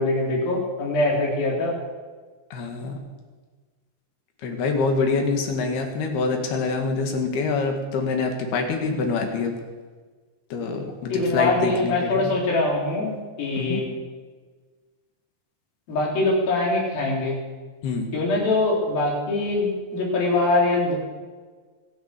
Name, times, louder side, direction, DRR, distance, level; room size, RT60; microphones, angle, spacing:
voice 1, 0.0-1.8 11.1-13.8 15.9-17.4 18.1-20.9, left 2 dB, 65° left, -3 dB, 5.8 m, -23 dB
voice 2, 2.5-3.0 4.4-9.6 10.5-12.4 13.6-13.8 17.8-18.1, left 4 dB, 80° left, 4 dB, 4.0 m, -25 dB
23.5 x 8.9 x 6.8 m, 1.4 s
omnidirectional pair, 4.4 m